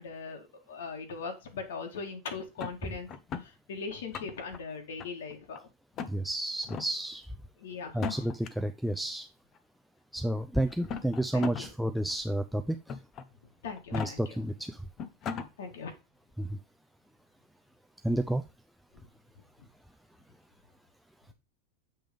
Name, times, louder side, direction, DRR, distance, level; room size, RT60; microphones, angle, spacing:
voice 1, 0.0-3.1 3.4-5.7 7.6-8.2 11.3-11.7 13.6-14.4 15.6-15.9, left 5 dB, 90° left, 3 dB, 1.8 m, -40 dB
sound 1, 2.6-3.5 4.0-4.6 5.0-5.6 5.9-6.1 6.6-6.9 7.9-8.5 9.5-9.6 10.7-11.7 12.1-12.2 12.9-13.2 13.8-14.1 14.6-14.7 15.0-15.5, left 6 dB, 30° left, 0.7 m, -37 dB
voice 2, 6.1-7.3 7.9-9.3 10.1-12.9 13.9-14.8 16.4-16.6 18.0-18.4, right 1 dB, ahead, 6 dB, 0.4 m, -31 dB
7.6 x 3.4 x 5.2 m, 0.28 s
supercardioid pair, 150°, 0 cm